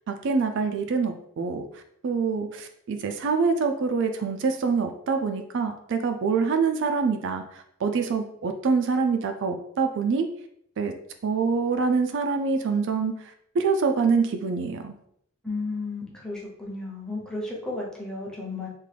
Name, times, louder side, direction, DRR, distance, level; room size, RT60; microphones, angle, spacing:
voice 1, 0.1-1.6 2.0-10.3 10.8-10.9 11.2-13.2 13.5-14.9, right 5 dB, 60° right, 6 dB, 0.4 m, -25 dB
voice 2, 15.4-18.7, left 3 dB, 5° left, -4 dB, 0.8 m, -33 dB
3.6 x 2.5 x 3.3 m, 0.70 s
head